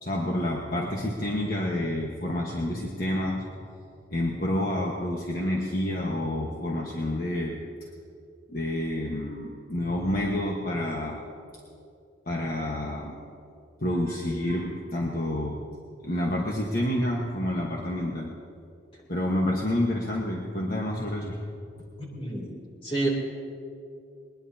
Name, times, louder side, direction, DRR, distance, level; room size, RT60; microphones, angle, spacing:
voice 1, 0.0-3.4 4.1-7.6 8.5-11.2 12.3-13.2 13.8-15.6 16.0-18.3 19.1-21.4, left 1 dB, 50° left, -1 dB, 1.3 m, -28 dB
voice 2, 22.0-22.5 22.8-23.1, right 2 dB, 30° left, -2 dB, 3.1 m, -29 dB
21.0 x 20.5 x 2.8 m, 2.5 s
head